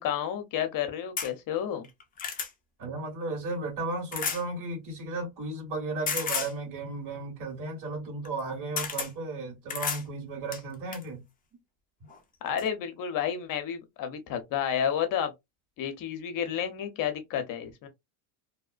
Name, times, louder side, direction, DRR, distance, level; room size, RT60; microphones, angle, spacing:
voice 1, 0.0-1.9 12.4-15.3 15.8-17.9, left 9 dB, 45° left, 0.7 m, -31 dB
sound 1, 1.2-1.3 1.8-2.5 4.1-4.4 6.1-6.5 8.2-8.4 8.8-9.1 9.7-10.0 10.5-11.1 12.1-12.2 12.6-12.7, left 6 dB, 20° left, 0.4 m, -32 dB
voice 2, 2.8-11.2, right 2 dB, 45° right, 1.7 m, -34 dB
2.8 x 2.1 x 2.4 m
cardioid pair, 130°, 47 cm